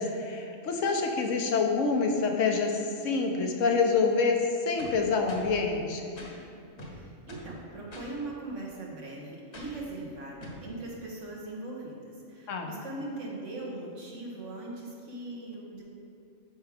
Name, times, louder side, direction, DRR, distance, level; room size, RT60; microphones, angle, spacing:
voice 1, 0.0-4.4 4.6-6.2 12.5-12.7, left 4 dB, 85° left, 2 dB, 1.2 m, -27 dB
sound 1, 4.8-5.6 6.2-6.3 6.8-7.6 7.9-8.1 9.5-9.9 10.4-10.7, left 1 dB, 65° left, 1.5 m, -44 dB
voice 2, 6.8-15.8, right 2 dB, 80° right, -3 dB, 1.6 m, -40 dB
11.5 x 4.6 x 3.5 m, 2.6 s
omnidirectional pair, 1.3 m